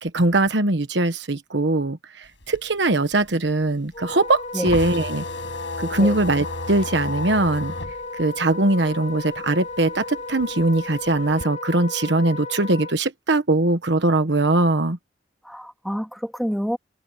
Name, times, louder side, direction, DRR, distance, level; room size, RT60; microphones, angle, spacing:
voice 1, 0.0-5.2 5.8-7.7 8.1-15.0, right 2 dB, 70° right, 1.3 m, -21 dB
sound 1, 2.3-9.4 9.7-11.4, left 2 dB, 90° left, 6.8 m, -34 dB
Wind instrument woodwind instrument, 3.9-12.9, left 3 dB, 40° left, 1.7 m, -34 dB
voice 2, 15.4-16.8, equal, ahead, 3.2 m, -28 dB
head